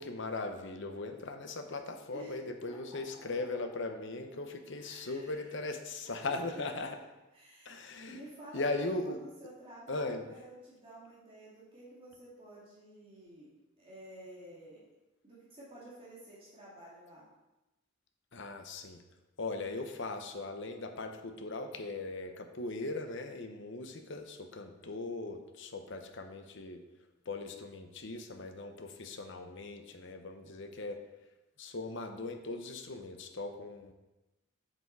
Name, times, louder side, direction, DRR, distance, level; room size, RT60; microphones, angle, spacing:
voice 1, 0.0-7.0 7.6-8.2 8.5-9.2 9.9-10.3 18.3-19.0 19.4-26.8 27.2-31.0 31.6-33.9, left 2 dB, 55° left, 6 dB, 0.8 m, -39 dB
voice 2, 2.7-3.5 4.8-5.5 6.0-6.9 7.3-7.8 8.1-13.5 13.8-14.8 15.2-17.2, right 1 dB, 25° right, -8 dB, 2.4 m, -51 dB
7.7 x 6.0 x 4.7 m, 1.0 s
head